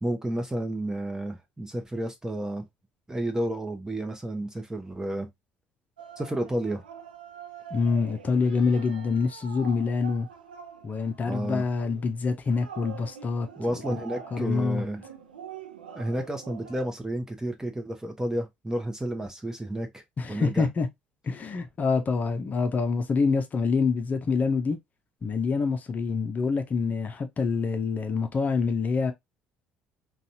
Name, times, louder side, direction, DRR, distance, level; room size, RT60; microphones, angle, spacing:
voice 1, 0.0-2.6 3.1-5.3 6.2-6.8 11.3-11.6 13.6-15.0 15.9-20.0 20.3-20.7, right 1 dB, 10° right, 0.9 m, -31 dB
sound 1, 6.0-16.9, right 7 dB, 90° right, 0.4 m, -45 dB
voice 2, 7.7-10.3 10.8-13.5 13.9-14.0 14.3-14.8 20.2-20.9 21.2-24.8 25.2-29.1, left 4 dB, 35° left, 0.6 m, -26 dB
3.9 x 2.4 x 2.7 m
hypercardioid pair, 60°, 5 cm